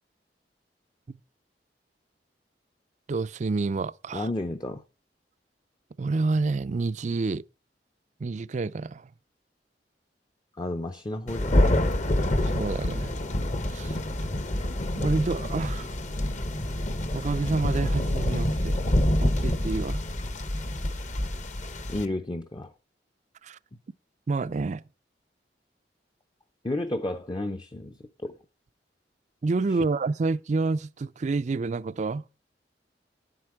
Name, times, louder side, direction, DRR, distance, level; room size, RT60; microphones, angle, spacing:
voice 1, 3.1-4.3 6.0-7.4 8.2-9.1 12.5-13.2 13.7-14.0 15.0-15.9 17.1-18.8 19.2-20.1 23.4-23.6 24.3-24.8 29.4-32.2, right 3 dB, 40° right, 0.4 m, -28 dB
voice 2, 4.1-4.8 10.6-11.8 21.9-22.7 26.6-28.4 29.7-29.9, left 1 dB, 25° left, 0.6 m, -32 dB
Thunder, 11.3-22.0, left 1 dB, 45° left, 1.0 m, -27 dB
10.5 x 7.8 x 4.7 m
head